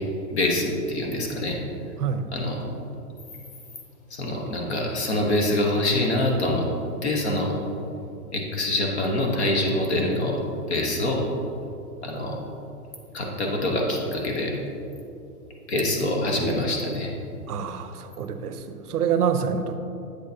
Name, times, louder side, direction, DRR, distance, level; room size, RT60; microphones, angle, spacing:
voice 1, 0.3-1.6 2.3-2.6 4.1-6.7 7.0-7.5 8.3-10.4 10.7-11.3 12.0-12.4 13.1-14.5 15.7-17.1, left 1 dB, 45° left, 0 dB, 1.1 m, -25 dB
voice 2, 17.5-19.8, right 7 dB, 70° right, 9 dB, 0.6 m, -26 dB
8.1 x 6.4 x 2.8 m, 2.7 s
hypercardioid pair, 175°, 47 cm